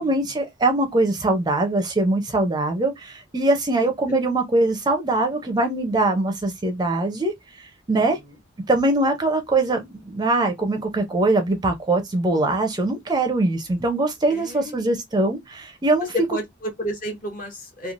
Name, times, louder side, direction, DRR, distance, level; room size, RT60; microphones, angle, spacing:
voice 1, 0.0-8.2 8.7-16.1, right 2 dB, 20° right, 0.5 m, -22 dB
voice 2, 7.9-8.3 14.3-14.8 16.1-17.9, equal, 45° left, 1.0 m, -32 dB
3.1 x 2.3 x 2.4 m
head